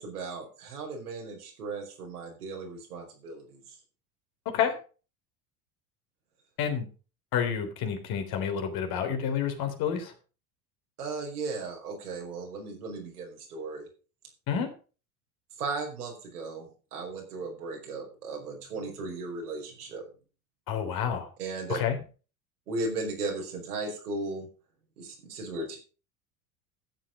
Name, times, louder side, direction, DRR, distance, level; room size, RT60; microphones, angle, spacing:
voice 1, 0.0-3.6 11.0-13.8 15.6-20.0 21.4-21.8 22.7-24.5 25.0-25.8, right 3 dB, 85° right, 1 dB, 5.1 m, -36 dB
voice 2, 7.3-10.1 14.5-14.7 20.7-21.3 21.7-22.0, left 8 dB, 55° left, 6 dB, 3.5 m, -29 dB
13.0 x 8.2 x 5.3 m, 0.36 s
hypercardioid pair, 75°, 44 cm